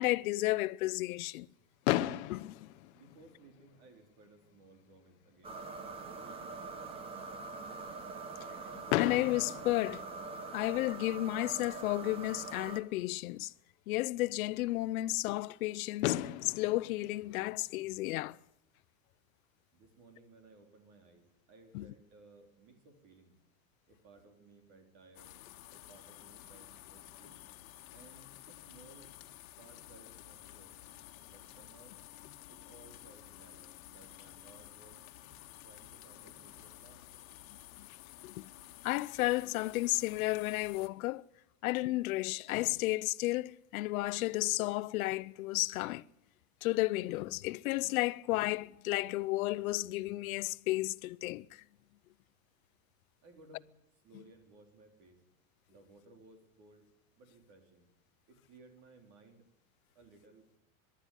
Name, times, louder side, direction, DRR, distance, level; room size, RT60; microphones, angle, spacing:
voice 1, 0.0-1.5 2.3-2.6 8.7-10.0 10.5-13.5 13.9-18.4 21.7-21.9 37.8-37.9 38.2-38.4 38.8-41.2 41.6-46.1 46.6-51.6, left 18 dB, 90° left, 0.7 m, -33 dB
Fireworks, 1.8-3.9 4.7-4.8 5.0-5.2 5.5-5.6 8.9-10.7 12.4-12.5 15.6-15.7 16.0-18.3, left 15 dB, 55° left, 0.8 m, -36 dB
voice 2, 2.9-5.6 6.0-7.2 19.7-23.4 23.9-25.4 25.7-27.4 27.9-29.1 29.6-30.7 31.3-32.0 32.5-35.0 35.6-37.1 53.2-53.7 54.0-55.2 55.7-56.9 57.2-57.9 58.3-59.5 59.9-60.5, right 3 dB, 40° right, 3.9 m, -60 dB
sound 1, 5.4-12.8, right 4 dB, 15° right, 1.0 m, -44 dB
sound 2, 25.1-40.9, left 14 dB, 70° left, 1.6 m, -52 dB
23.5 x 11.5 x 10.0 m
supercardioid pair, 180°, 41 cm